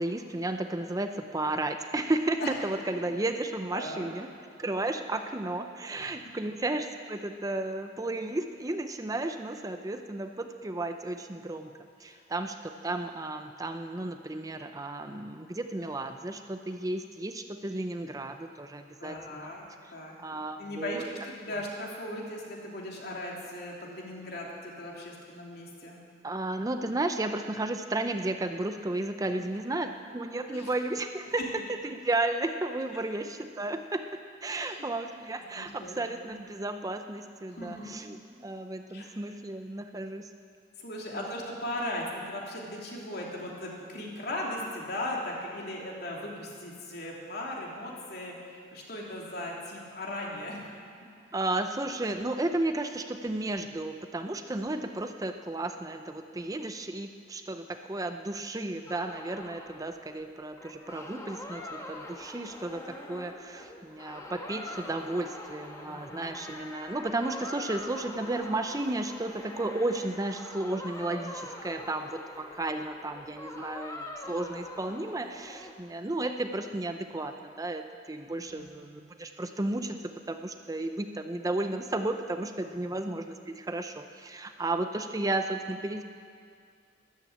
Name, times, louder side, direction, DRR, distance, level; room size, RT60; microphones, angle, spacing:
voice 1, 0.0-4.3 4.6-11.7 12.0-19.5 19.8-19.9 20.2-21.0 21.5-21.6 26.2-31.4 31.8-40.3 41.1-41.3 51.3-86.0, right 2 dB, 20° right, 7 dB, 0.5 m, -33 dB
voice 2, 3.7-4.0 5.9-6.5 12.0-12.2 19.0-19.7 19.9-26.0 30.5-30.7 34.5-34.9 35.5-36.0 36.2-36.3 37.5-37.9 38.9-39.1 40.8-48.3 48.7-50.6 51.0-51.1 65.8-66.4 78.2-78.7 82.6-82.9, left 1 dB, 60° left, -2 dB, 3.1 m, -38 dB
sound 1, 58.9-75.7, left 1 dB, 15° left, 1.4 m, -44 dB
13.0 x 12.5 x 8.7 m, 2.3 s
head